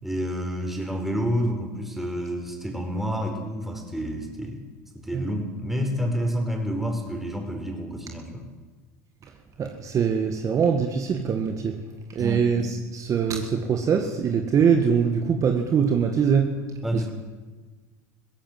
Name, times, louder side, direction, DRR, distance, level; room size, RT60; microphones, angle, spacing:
voice 1, 0.0-4.6 4.9-8.5 12.2-12.5 16.8-17.1, equal, 5° right, 2 dB, 5.0 m, -29 dB
voice 2, 9.6-11.7 12.1-16.5 16.9-17.1, right 6 dB, 35° right, 4 dB, 1.9 m, -23 dB
22.0 x 16.5 x 7.6 m, 1.3 s
supercardioid pair, 105°, 9 cm